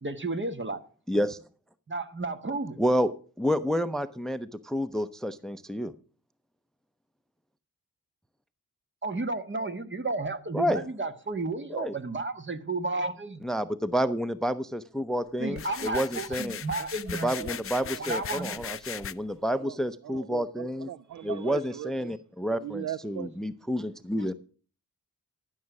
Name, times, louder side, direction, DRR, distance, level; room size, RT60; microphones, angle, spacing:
voice 1, 0.0-0.8 1.9-2.8 9.0-13.4 15.4-17.3 18.0-18.6, right 3 dB, 30° right, 1.4 m, -32 dB
voice 2, 1.1-1.4 2.8-3.1 3.4-5.9 10.5-10.8 11.7-11.9 13.4-16.6 17.1-20.9 21.2-24.3, equal, ahead, 0.7 m, -29 dB
sound 1, 15.5-19.1, left 8 dB, 40° left, 0.5 m, -38 dB
voice 3, 17.3-19.0 19.6-19.8 20.0-22.1 22.5-23.5, right 12 dB, 55° right, 0.5 m, -40 dB
13.5 x 6.6 x 5.9 m
supercardioid pair, 45°, 36 cm